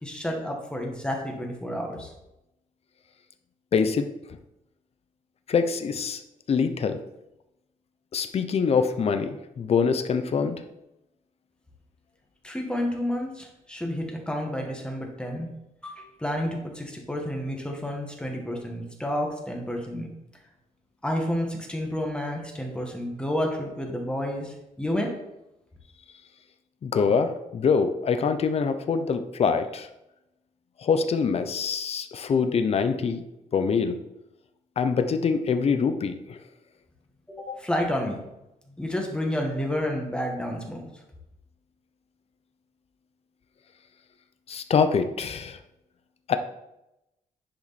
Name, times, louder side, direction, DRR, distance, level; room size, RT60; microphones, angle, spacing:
voice 1, 0.0-2.1 12.4-15.5 15.8-20.1 21.0-25.2 37.3-38.2 38.8-40.9, left 1 dB, 5° left, 1 dB, 1.8 m, -30 dB
voice 2, 3.7-4.1 5.5-6.2 6.5-7.0 8.1-10.6 26.8-29.9 30.8-33.2 33.5-34.0 34.8-36.4 37.5-37.6 44.5-45.6 46.3-46.4, left 5 dB, 45° left, 8 dB, 0.8 m, -24 dB
10.5 x 5.1 x 4.3 m, 0.90 s
cardioid pair, 120°, 14 cm